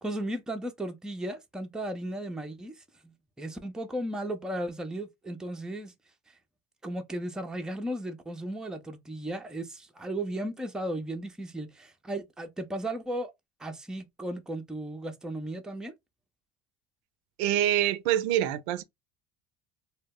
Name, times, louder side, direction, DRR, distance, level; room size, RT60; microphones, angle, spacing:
voice 1, 0.0-5.9 6.8-13.3 13.6-15.9, right 1 dB, ahead, 0.4 m, -35 dB
voice 2, 17.4-18.8, right 12 dB, 75° right, 0.5 m, -25 dB
2.2 x 2.1 x 3.5 m
supercardioid pair, 90°, 33 cm